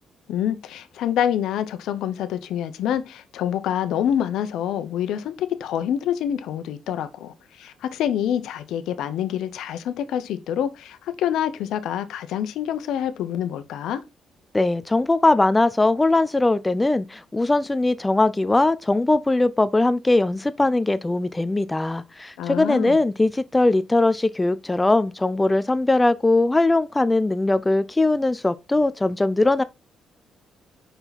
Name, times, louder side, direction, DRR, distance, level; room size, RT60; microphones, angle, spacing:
voice 1, 0.3-14.0 22.4-23.0, left 10 dB, 85° left, 0.9 m, -26 dB
voice 2, 14.5-29.6, left 2 dB, 15° left, 0.5 m, -20 dB
5.7 x 5.6 x 4.2 m
cardioid pair, 90°, 0 cm